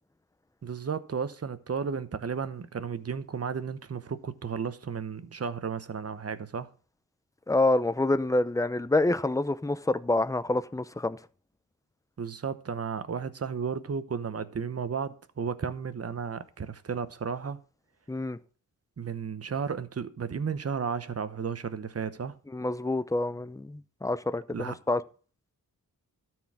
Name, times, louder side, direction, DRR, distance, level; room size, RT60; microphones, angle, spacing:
voice 1, 0.6-6.7 12.2-17.6 19.0-22.3 24.5-24.7, right 6 dB, 40° right, 0.9 m, -33 dB
voice 2, 7.5-11.2 18.1-18.4 22.5-25.0, left 2 dB, 10° left, 0.6 m, -27 dB
13.0 x 4.6 x 6.0 m
wide cardioid pair, 90°, 36 cm